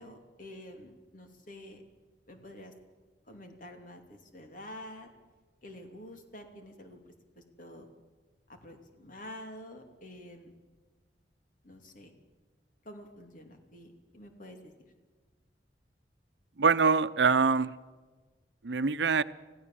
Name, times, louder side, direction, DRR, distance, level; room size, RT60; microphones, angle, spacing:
voice 1, 0.0-1.8 2.3-2.7 3.3-5.1 5.6-7.0 7.3-7.9 8.5-10.5 11.6-12.1 12.8-14.9, left 1 dB, 50° left, 5 dB, 2.9 m, -48 dB
voice 2, 16.6-17.7 18.6-19.2, right 5 dB, 85° right, 14 dB, 0.8 m, -24 dB
25.5 x 16.0 x 7.6 m, 1.4 s
head